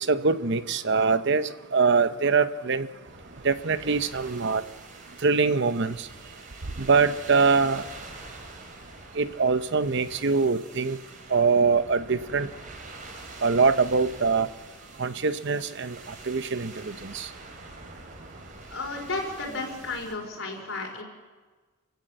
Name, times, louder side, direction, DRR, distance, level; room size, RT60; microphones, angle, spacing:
voice 1, 0.1-2.9 3.4-4.6 5.2-6.1 6.8-7.8 9.2-11.0 11.3-12.5 13.4-14.5 15.0-17.3, right 4 dB, 55° right, 12 dB, 0.8 m, -23 dB
sound 1, 3.0-20.1, right 3 dB, 40° right, 3.5 m, -46 dB
voice 2, 18.7-21.0, left 3 dB, 65° left, 2 dB, 4.8 m, -33 dB
27.5 x 16.5 x 7.9 m, 1.4 s
head